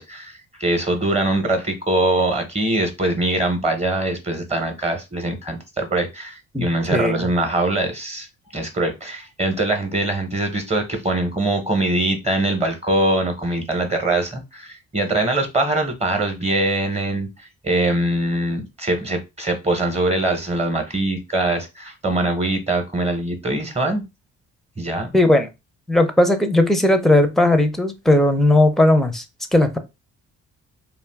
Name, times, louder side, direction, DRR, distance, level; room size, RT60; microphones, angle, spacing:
voice 1, 0.0-8.3 8.5-17.3 17.6-24.0 24.8-25.1, right 2 dB, 20° right, 0.8 m, -22 dB
voice 2, 6.5-7.3 25.1-25.5 25.9-29.2 29.5-29.8, left 1 dB, ahead, 0.5 m, -17 dB
2.5 x 2.3 x 3.4 m
cardioid pair, 90°, 30 cm